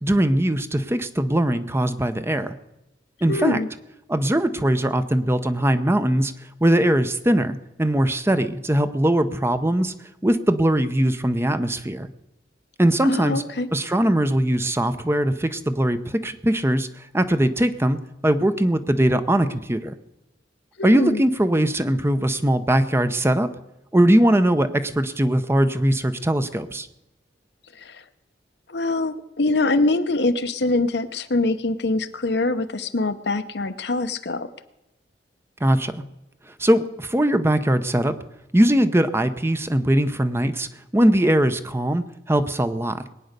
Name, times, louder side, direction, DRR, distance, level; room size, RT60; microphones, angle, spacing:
voice 1, 0.0-2.5 3.2-3.6 4.1-6.3 6.6-9.9 10.2-12.1 12.8-13.4 13.7-18.0 18.2-19.9 20.8-23.5 23.9-26.9 35.6-35.9 36.6-38.1 38.5-40.7 40.9-43.1, right 1 dB, 15° right, 10 dB, 0.7 m, -20 dB
voice 2, 3.3-3.7 13.0-13.7 20.8-21.2 27.8-28.0 28.7-34.5, left 2 dB, 65° left, 10 dB, 0.9 m, -24 dB
21.0 x 9.4 x 6.7 m, 0.93 s
head